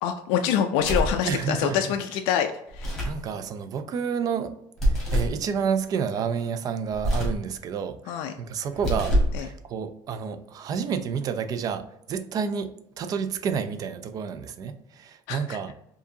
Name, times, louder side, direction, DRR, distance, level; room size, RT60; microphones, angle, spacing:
voice 1, 0.0-3.0 8.1-8.3 9.3-9.5 15.3-15.6, left 9 dB, 80° left, 0.3 m, -26 dB
sound 1, 0.8-1.2 2.7-3.2 4.8-5.4 6.9-7.4 8.7-9.4, equal, 5° left, 1.4 m, -25 dB
voice 2, 1.2-1.8 3.0-4.6 4.8-15.7, right 6 dB, 40° right, 0.4 m, -30 dB
4.6 x 2.7 x 2.7 m
cardioid pair, 140°, 10 cm